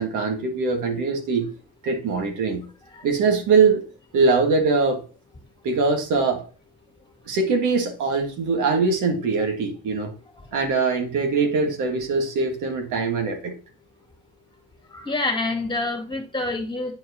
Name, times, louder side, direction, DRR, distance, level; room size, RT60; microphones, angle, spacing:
voice 1, 0.0-1.5 1.8-2.7 3.0-3.8 4.1-5.0 5.6-6.4 7.3-10.1 10.5-13.5, right 4 dB, 85° right, 3 dB, 1.7 m, -22 dB
voice 2, 14.9-16.9, left 2 dB, 15° left, 3 dB, 2.0 m, -27 dB
8.9 x 4.6 x 2.8 m, 0.38 s
cardioid pair, 90°, 30 cm